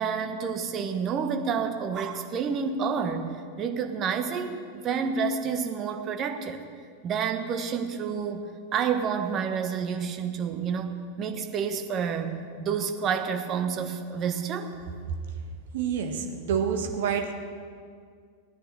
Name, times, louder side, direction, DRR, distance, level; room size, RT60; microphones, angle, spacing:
voice 1, 0.0-6.6 7.0-8.5 8.7-14.7, right 6 dB, 30° right, 6 dB, 1.3 m, -29 dB
voice 2, 15.7-17.3, right 7 dB, 55° right, 4 dB, 1.6 m, -28 dB
16.5 x 9.9 x 7.1 m, 2.1 s
figure-of-eight pair, 90°, 0 cm